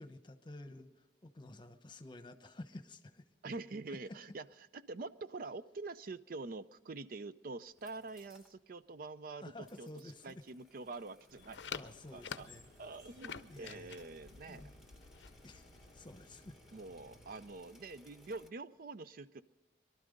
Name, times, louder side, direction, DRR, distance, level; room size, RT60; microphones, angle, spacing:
voice 1, 0.0-3.2 3.9-4.2 9.4-10.4 11.7-12.7 13.5-14.0 14.5-14.7 15.4-16.6, left 2 dB, 25° left, 9 dB, 1.0 m, -51 dB
voice 2, 3.4-4.5 4.7-9.9 10.2-11.6 12.1-12.5 12.8-14.7 16.7-19.4, right 3 dB, 50° right, 14 dB, 0.5 m, -46 dB
sound 1, 7.6-8.6 8.9-9.0 9.6-18.5, left 1 dB, ahead, 1.3 m, -65 dB
sound 2, 11.3-17.5, equal, 75° right, 7.5 m, -62 dB
sound 3, 11.4-16.5, left 7 dB, 75° left, 0.6 m, -49 dB
22.5 x 12.5 x 5.2 m, 1.2 s
head